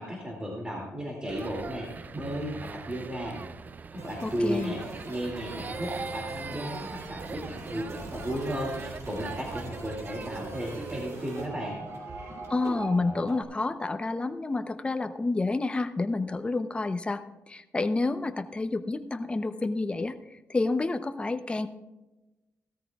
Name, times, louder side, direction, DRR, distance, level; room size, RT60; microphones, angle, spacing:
voice 1, 0.0-3.4 3.9-4.8 5.1-11.8, equal, 20° right, -2 dB, 2.4 m, -34 dB
sound 1, 1.3-11.1, right 4 dB, 35° right, 0.3 m, -41 dB
sound 2, 4.0-13.4, right 2 dB, 60° right, 3.0 m, -42 dB
voice 2, 4.2-4.7 12.5-20.1 20.5-21.7, left 3 dB, 20° left, 9 dB, 0.7 m, -29 dB
16.0 x 13.5 x 2.3 m, 1.1 s
cardioid pair, 115°, 5 cm